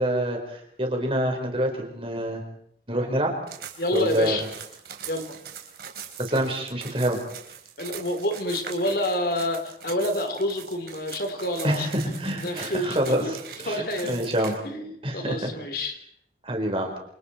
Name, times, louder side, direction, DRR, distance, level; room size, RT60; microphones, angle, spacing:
voice 1, 0.0-2.4 2.9-3.3 3.9-4.4 6.2-7.2 11.6-14.5 15.0-15.5 16.4-16.9, right 1 dB, 30° right, 2 dB, 4.6 m, -26 dB
sound 1, 3.5-14.5, right 8 dB, 60° right, 4.2 m, -42 dB
voice 2, 3.8-4.4 5.0-5.3 7.8-11.9 12.4-13.3 13.7-14.3 14.6-15.9, left 1 dB, 55° left, 6 dB, 3.8 m, -28 dB
28.0 x 27.5 x 4.5 m, 0.70 s
head